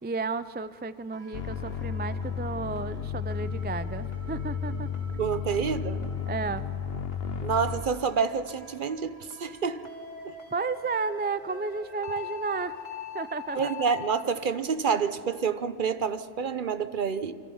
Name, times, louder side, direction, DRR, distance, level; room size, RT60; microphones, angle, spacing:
voice 1, 0.0-4.9 6.3-6.7 10.5-12.8 13.1-13.7, right 4 dB, 15° right, 14 dB, 0.3 m, -32 dB
sound 1, 1.1-14.2, left 5 dB, 40° left, 2.9 m, -45 dB
sound 2, 1.3-7.8, left 6 dB, 70° left, 1.1 m, -33 dB
voice 2, 5.2-6.0 7.4-9.9 10.2-10.3 13.5-17.3, right 6 dB, 55° right, 12 dB, 1.0 m, -28 dB
27.5 x 25.0 x 5.6 m, 2.4 s
omnidirectional pair, 1.0 m